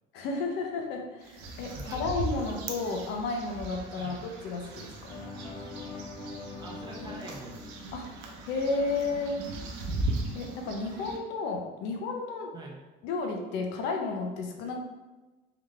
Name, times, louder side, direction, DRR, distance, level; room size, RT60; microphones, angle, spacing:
voice 1, 0.1-5.1 7.9-8.1 8.4-9.4 10.3-12.5 13.0-14.8, left 3 dB, 75° left, 3 dB, 0.7 m, -32 dB
sound 1, 1.2-11.2, right 2 dB, 85° right, 0.7 m, -38 dB
voice 2, 1.6-2.0 2.8-3.0 4.0-4.2 6.6-7.7 12.5-12.8, right 2 dB, 25° right, -2 dB, 0.8 m, -45 dB
Deep flow, 5.1-8.9, left 3 dB, 30° left, 0.5 m, -43 dB
3.8 x 3.5 x 3.3 m, 1.2 s
cardioid pair, 160°, 18 cm